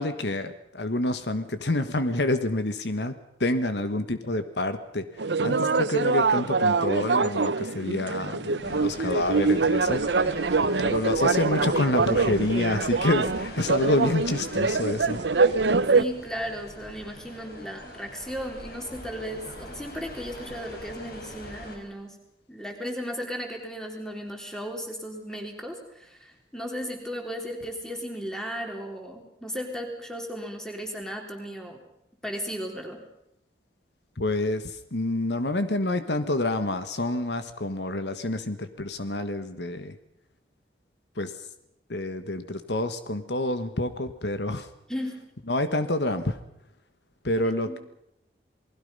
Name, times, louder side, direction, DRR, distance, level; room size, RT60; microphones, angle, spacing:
voice 1, 0.0-10.4 10.8-15.2 34.2-40.0 41.1-41.3 41.9-44.7 45.5-46.4 47.2-47.8, left 1 dB, 75° left, 10 dB, 1.5 m, -28 dB
sound 1, 5.2-16.0, right 4 dB, 80° right, 0.9 m, -24 dB
sound 2, 8.6-21.8, left 1 dB, 60° left, 5.0 m, -42 dB
voice 2, 15.9-22.2 22.5-31.8 32.2-33.0 44.9-45.2 47.4-47.8, equal, 5° left, 2 dB, 3.6 m, -35 dB
28.5 x 20.0 x 5.6 m, 0.79 s
head